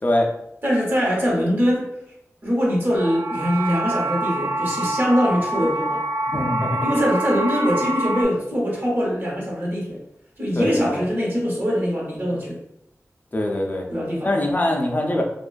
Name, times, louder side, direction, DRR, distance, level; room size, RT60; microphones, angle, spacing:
voice 1, 0.6-1.9 2.4-6.0 6.8-10.0 10.4-12.6 13.9-14.3, equal, 40° right, -3 dB, 0.9 m, -22 dB
sound 1, 3.0-8.2, right 1 dB, 80° right, 0.4 m, -26 dB
voice 2, 6.3-6.8 10.6-11.0 13.3-13.9 14.2-15.2, left 1 dB, 35° left, 0 dB, 0.3 m, -22 dB
2.4 x 2.2 x 2.3 m, 0.79 s
wide cardioid pair, 60°, 5 cm